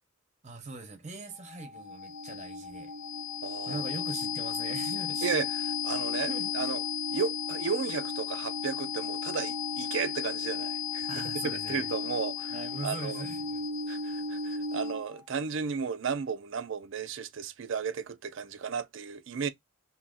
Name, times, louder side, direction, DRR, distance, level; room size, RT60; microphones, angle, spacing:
voice 1, 0.4-2.9 3.7-5.3 6.3-6.7 11.1-12.0 12.5-13.6, right 3 dB, 35° right, 0.9 m, -41 dB
sound 1, 1.3-15.2, left 5 dB, 55° left, 1.5 m, -34 dB
voice 2, 3.4-3.8 5.2-6.8 7.1-12.5 12.8-13.2 13.9-19.5, right 6 dB, 60° right, 0.4 m, -34 dB
2.8 x 2.6 x 3.7 m
head